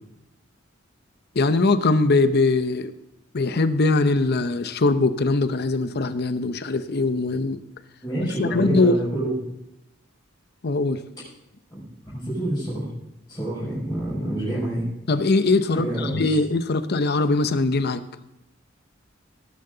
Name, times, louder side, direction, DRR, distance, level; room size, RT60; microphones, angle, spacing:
voice 1, 1.3-2.9 3.3-7.6 8.2-9.0 10.6-11.0 15.1-18.0, left 3 dB, 55° left, 12 dB, 0.7 m, -21 dB
voice 2, 8.0-9.4 11.1-11.2 11.7-12.9 13.3-14.9 15.7-16.4, right 1 dB, 15° left, -10 dB, 5.8 m, -28 dB
18.0 x 10.5 x 3.9 m, 0.86 s
head